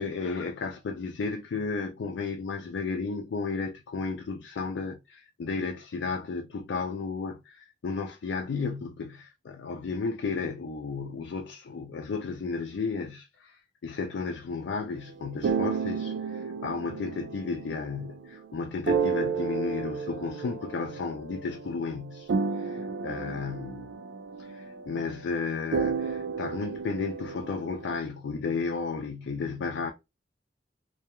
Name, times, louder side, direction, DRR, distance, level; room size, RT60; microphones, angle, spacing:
voice 1, 0.0-23.9 24.4-29.9, left 4 dB, 80° left, 0.4 m, -33 dB
sound 1, 15.1-18.5 18.9-21.8 22.1-28.0, right 5 dB, 85° right, 0.4 m, -32 dB
2.3 x 2.2 x 2.9 m
head